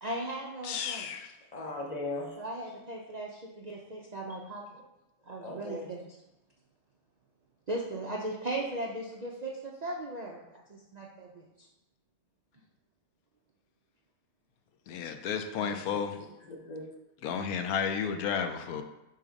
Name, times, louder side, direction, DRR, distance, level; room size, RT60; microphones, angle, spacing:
voice 1, 0.0-1.1 2.4-4.8 5.2-6.0 7.7-11.7, right 1 dB, 75° right, -2 dB, 0.3 m, -38 dB
voice 2, 0.6-1.3 14.9-16.2 17.2-18.8, left 7 dB, 75° left, 7 dB, 1.0 m, -32 dB
voice 3, 1.5-2.7 5.4-5.9 15.5-16.8, left 2 dB, 35° left, 1 dB, 0.7 m, -40 dB
6.9 x 2.9 x 5.0 m, 0.92 s
omnidirectional pair, 1.6 m